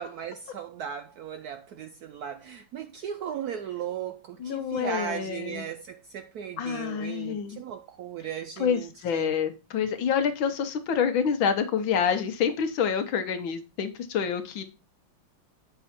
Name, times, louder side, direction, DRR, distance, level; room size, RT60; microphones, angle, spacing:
voice 1, 0.0-9.3, right 9 dB, 75° right, 0.9 m, -37 dB
voice 2, 4.4-5.6 6.6-7.6 8.6-14.6, left 7 dB, 80° left, 1.6 m, -27 dB
8.1 x 5.8 x 4.2 m
omnidirectional pair, 2.1 m